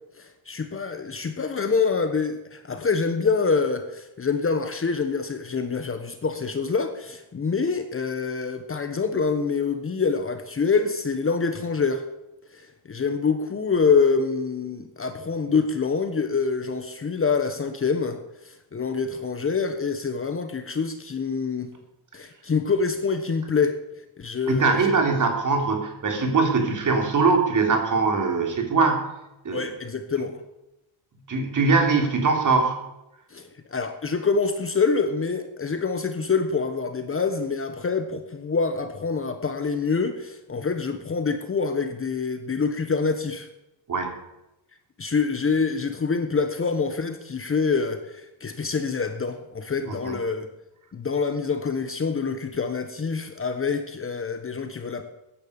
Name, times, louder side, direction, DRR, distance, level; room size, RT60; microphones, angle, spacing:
voice 1, 0.2-12.0 12.5-21.7 22.1-23.8 24.2-25.0 29.5-30.4 33.3-43.5 45.0-50.5 50.9-55.0, left 5 dB, 25° left, 8 dB, 1.3 m, -26 dB
voice 2, 24.5-29.1 29.4-29.6 31.3-32.8 43.9-44.1 50.0-50.1, right 4 dB, 40° right, 3 dB, 3.8 m, -22 dB
15.5 x 10.5 x 7.2 m, 0.92 s
cardioid pair, 125°, 49 cm